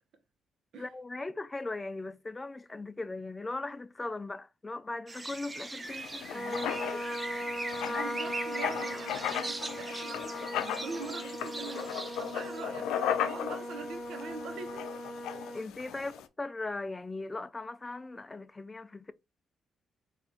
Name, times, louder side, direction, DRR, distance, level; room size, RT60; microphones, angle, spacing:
voice 1, 0.8-7.0 15.5-19.1, left 2 dB, 20° left, 0.4 m, -39 dB
sound 1, 5.1-12.6, right 2 dB, 25° right, 0.8 m, -41 dB
Writing, 5.9-16.2, left 9 dB, 85° left, 0.4 m, -37 dB
Trumpet, 6.3-15.6, left 1 dB, 35° left, 1.3 m, -39 dB
voice 2, 7.8-14.9, right 5 dB, 70° right, 1.0 m, -43 dB
4.2 x 2.6 x 3.4 m
cardioid pair, 90°, 0 cm